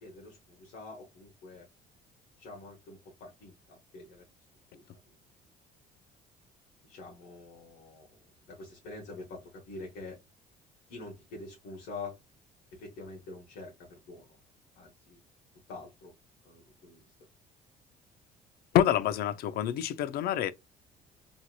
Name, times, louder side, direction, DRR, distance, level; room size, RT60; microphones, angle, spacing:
voice 1, 0.0-1.7 2.4-4.3 4.7-5.0 6.8-8.2 8.4-10.2 10.9-12.2 12.7-14.4 14.7-15.2 15.7-16.1 16.4-17.0, left 3 dB, 90° left, 0.9 m, -46 dB
voice 2, 18.7-20.5, left 11 dB, 65° left, 0.4 m, -27 dB
2.8 x 2.6 x 2.3 m
cardioid pair, 110°, 17 cm